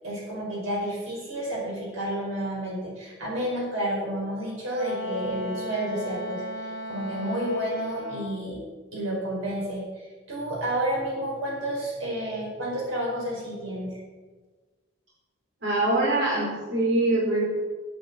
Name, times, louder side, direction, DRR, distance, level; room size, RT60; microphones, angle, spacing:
voice 1, 0.0-8.6 8.9-14.0, right 1 dB, 80° right, -3 dB, 5.1 m, -30 dB
Wind instrument woodwind instrument, 4.7-8.4, left 1 dB, 70° left, 1.4 m, -35 dB
voice 2, 15.6-17.4, right 2 dB, 65° right, -7 dB, 4.5 m, -23 dB
10.5 x 9.2 x 7.0 m, 1.4 s
head